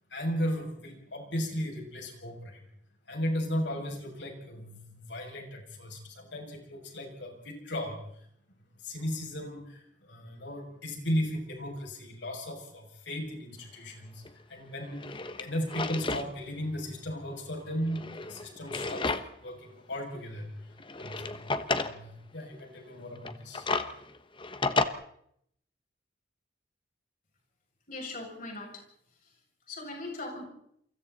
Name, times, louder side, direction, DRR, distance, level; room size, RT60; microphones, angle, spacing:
voice 1, 0.1-2.6 3.1-8.0 8.8-14.2 14.5-19.1 19.4-20.7 21.0-21.4 21.7-23.7, equal, 70° left, 1 dB, 7.0 m, -36 dB
Drawer open or close, 14.3-14.4 14.9-16.3 16.7-16.8 17.8-19.5 19.9-20.0 20.8-22.0 23.2-24.9, left 3 dB, 25° left, 1.2 m, -32 dB
voice 2, 27.9-28.8 29.2-29.3 29.7-30.4, left 2 dB, 45° left, 0 dB, 7.2 m, -40 dB
29.0 x 24.0 x 4.2 m, 0.71 s
head